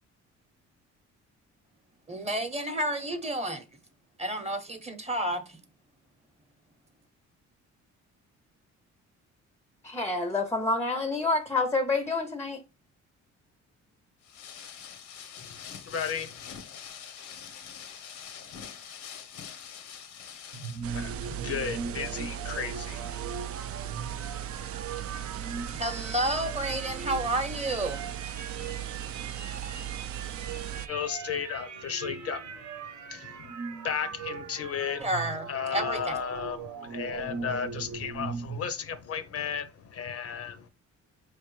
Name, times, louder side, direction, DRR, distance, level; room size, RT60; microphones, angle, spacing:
voice 1, 2.1-3.6 4.2-5.4 25.7-28.0 35.0-36.1, right 1 dB, 20° right, 0.8 m, -30 dB
voice 2, 9.8-12.6, left 3 dB, 10° left, 0.5 m, -28 dB
sound 1, 14.2-20.9, left 8 dB, 80° left, 0.8 m, -44 dB
voice 3, 15.4-16.4 20.9-23.5 30.9-35.1 35.5-40.7, left 7 dB, 50° left, 0.6 m, -35 dB
sound 2, 20.5-38.7, right 5 dB, 70° right, 0.8 m, -40 dB
sound 3, 20.8-30.9, right 10 dB, 50° right, 0.4 m, -37 dB
4.4 x 3.2 x 3.1 m
cardioid pair, 90°, 30 cm